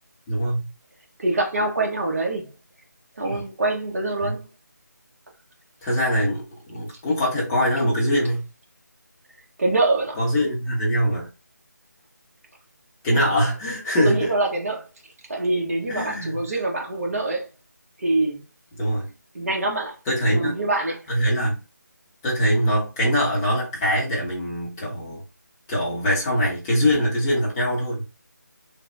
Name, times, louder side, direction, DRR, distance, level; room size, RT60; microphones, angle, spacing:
voice 1, 0.3-0.6 3.2-3.4 4.2-4.3 5.8-8.4 10.2-11.3 13.0-14.3 15.9-16.3 18.8-19.1 20.1-20.5 21.1-21.6 22.2-25.2 25.7-28.0, equal, 10° left, 0.6 m, -23 dB
voice 2, 1.2-2.5 3.2-4.5 9.6-10.2 14.0-14.9 15.3-17.5 18.0-18.4 19.3-20.0 20.2-21.0, right 2 dB, 50° right, 0.9 m, -24 dB
3.0 x 2.0 x 2.5 m
figure-of-eight pair, 160°, 10 cm